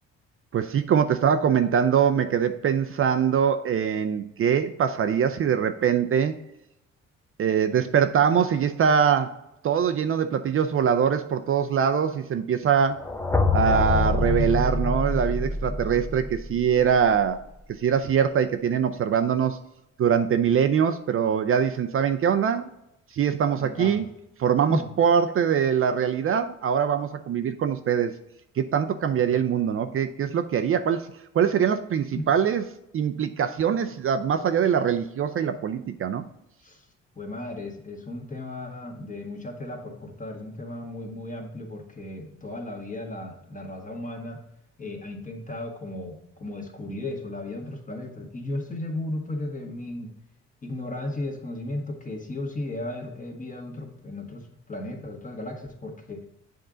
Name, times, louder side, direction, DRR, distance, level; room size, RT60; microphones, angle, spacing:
voice 1, 0.5-6.4 7.4-9.4 9.6-13.0 13.5-17.4 17.8-19.6 20.0-22.7 23.1-24.1 24.4-28.2 28.6-31.1 31.3-32.6 32.9-36.2, right 7 dB, 45° right, 9 dB, 0.5 m, -23 dB
sound 1, 13.0-17.0, left 3 dB, 10° left, 0.6 m, -26 dB
voice 2, 23.6-24.1 24.7-24.9 32.1-32.3 36.6-36.9 37.1-44.4 44.8-50.1 50.6-56.2, left 1 dB, 25° left, 2 dB, 1.5 m, -35 dB
7.8 x 3.7 x 3.8 m, 0.82 s
cardioid pair, 90°, 30 cm